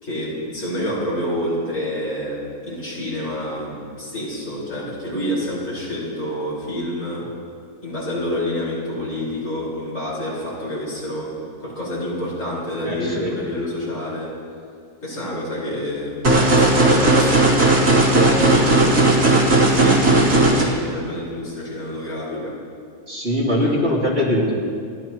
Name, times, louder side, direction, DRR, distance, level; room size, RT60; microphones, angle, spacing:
voice 1, 0.0-7.3 7.8-14.4 15.0-16.2 16.5-19.1 19.6-22.6 23.6-23.7, left 1 dB, 50° left, -6 dB, 5.2 m, -28 dB
voice 2, 12.8-13.4 23.1-24.5, equal, 40° right, -6 dB, 3.2 m, -21 dB
sound 1, 16.2-20.6, right 2 dB, 70° right, 3.3 m, -15 dB
30.0 x 13.0 x 3.0 m, 2.2 s
omnidirectional pair, 1.7 m